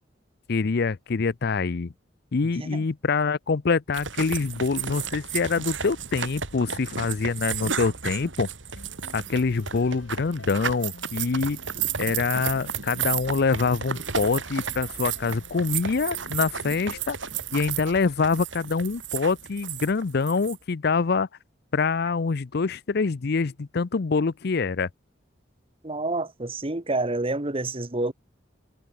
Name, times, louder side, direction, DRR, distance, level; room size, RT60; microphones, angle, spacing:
voice 1, 0.5-1.9 2.3-8.5 9.1-11.6 12.0-17.2 17.5-21.3 21.7-24.9, left 4 dB, 55° left, 0.6 m, -25 dB
sound 1, 3.9-20.6, right 7 dB, 80° right, 3.9 m, -33 dB
sound 2, 8.8-17.5, left 2 dB, 90° left, 3.9 m, -50 dB
voice 2, 25.8-28.1, right 2 dB, 30° right, 1.5 m, -28 dB
head